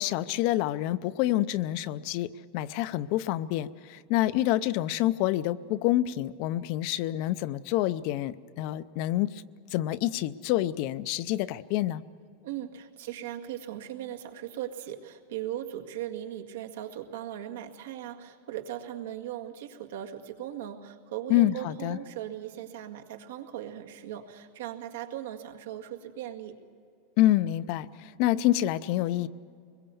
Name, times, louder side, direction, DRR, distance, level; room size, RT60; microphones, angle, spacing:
voice 1, 0.0-2.3 2.5-9.3 9.7-12.0 21.3-22.0 27.2-27.9 28.2-29.3, left 14 dB, 40° left, 15 dB, 0.5 m, -27 dB
voice 2, 12.4-26.6, right 11 dB, 80° right, 4 dB, 1.9 m, -38 dB
24.0 x 22.0 x 7.0 m, 2.3 s
supercardioid pair, 180°, 0 cm